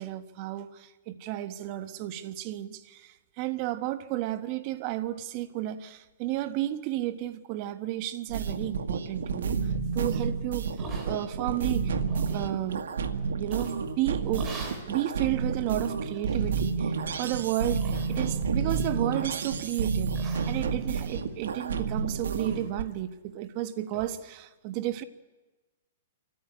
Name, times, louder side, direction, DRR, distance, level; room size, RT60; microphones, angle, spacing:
voice 1, 0.0-9.6 9.9-10.7 11.0-12.0 12.3-12.9 13.4-25.0, right 14 dB, 40° right, 1.2 m, -32 dB
sound 1, 8.3-22.8, right 5 dB, 85° right, 1.6 m, -30 dB
sound 2, 10.8-11.5 11.9-12.5 13.5-13.9 14.3-14.9 15.4-15.5 16.1-16.5 17.0-17.2 17.8-18.5 18.8-19.3 19.7-19.9 20.1-22.0 22.3-22.7 22.9-23.0 23.4-23.5 23.9-24.1, right 2 dB, 25° right, 3.4 m, -44 dB
26.0 x 14.5 x 9.7 m
hypercardioid pair, 150°, 0 cm